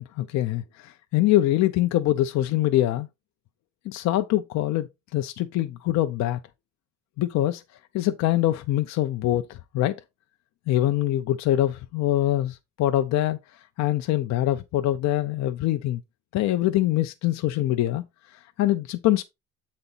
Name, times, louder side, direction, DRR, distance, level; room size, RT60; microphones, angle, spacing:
voice 1, 0.0-3.1 3.9-4.9 5.1-6.4 7.2-7.6 7.9-9.4 9.7-9.9 10.7-13.4 13.8-16.0 16.3-18.0 18.6-19.2, left 14 dB, 60° left, 0.6 m, -24 dB
7.9 x 4.2 x 4.0 m
cardioid pair, 145°, 30 cm